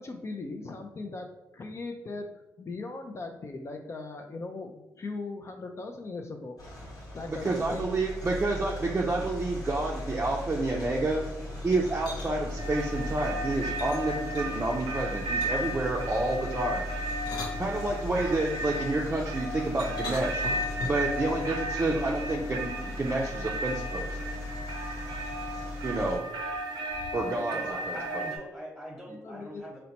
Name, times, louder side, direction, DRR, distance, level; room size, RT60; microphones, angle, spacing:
voice 1, 0.0-6.6 7.1-8.0 28.9-29.8, left 3 dB, 40° left, 4 dB, 0.4 m, -39 dB
sound 1, 6.6-26.2, left 1 dB, 60° left, 1.2 m, -38 dB
voice 2, 7.4-11.2 11.6-16.9 17.6-20.4 20.9-24.2 25.8-26.2 27.1-27.6 27.9-28.2, right 2 dB, 30° right, -2 dB, 0.5 m, -29 dB
sound 2, 11.6-12.3 13.8-14.7 15.4-15.8 16.9-18.3 19.8-21.1, left 2 dB, 80° left, 0.7 m, -40 dB
sound 3, 12.6-28.4, right 1 dB, 80° right, 0.5 m, -35 dB
voice 3, 27.5-29.8, equal, 10° right, -7 dB, 1.0 m, -42 dB
3.9 x 2.1 x 2.8 m, 0.95 s
supercardioid pair, 65°, 7 cm